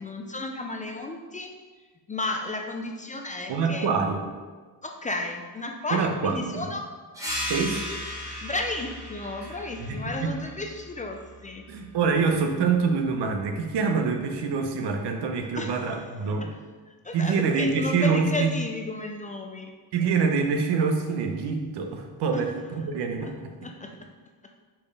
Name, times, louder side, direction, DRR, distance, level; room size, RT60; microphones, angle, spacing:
voice 1, 0.0-1.5 2.1-3.9 4.8-6.9 8.4-11.6 15.5-16.1 16.4-16.6 16.9-19.7 22.3-22.4 23.2-23.3 23.6-24.0, left 2 dB, 20° left, 3 dB, 0.3 m, -33 dB
voice 2, 3.5-4.2 5.9-6.7 7.5-8.0 9.8-10.3 11.7-16.5 17.1-18.5 19.9-23.3, right 5 dB, 80° right, 4 dB, 1.0 m, -25 dB
sound 1, 7.1-12.3, left 1 dB, 10° right, 1.3 m, -37 dB
5.3 x 4.7 x 5.3 m, 1.4 s
cardioid pair, 170°, 40 cm